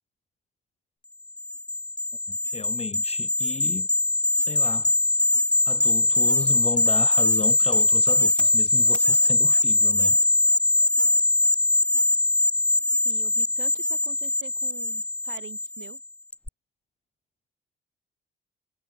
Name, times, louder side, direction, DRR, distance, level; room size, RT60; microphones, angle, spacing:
sound 1, 1.4-16.0 16.3-16.5, left 2 dB, 5° left, 0.3 m, -22 dB
voice 1, 2.3-3.9 4.3-4.9 5.6-10.2, left 5 dB, 30° left, 0.7 m, -35 dB
sound 2, 4.4-8.9, left 10 dB, 60° left, 1.9 m, -52 dB
voice 2, 13.0-16.0, right 13 dB, 80° right, 4.7 m, -45 dB
cardioid pair, 90°, 20 cm